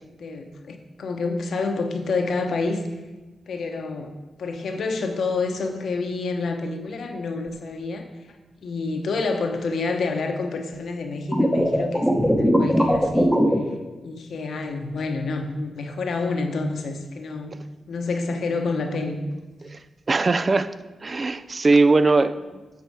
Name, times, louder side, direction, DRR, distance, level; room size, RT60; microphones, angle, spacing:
voice 1, 0.0-2.8 3.5-4.1 4.4-8.0 8.6-13.4 14.0-17.6 17.9-19.2, left 3 dB, 75° left, 5 dB, 0.8 m, -28 dB
sound 1, 11.3-13.6, equal, 5° right, 1.0 m, -19 dB
voice 2, 20.1-20.7 21.0-22.6, right 3 dB, 40° right, 13 dB, 0.4 m, -20 dB
8.2 x 4.5 x 4.7 m, 1.2 s
cardioid pair, 70°, 0 cm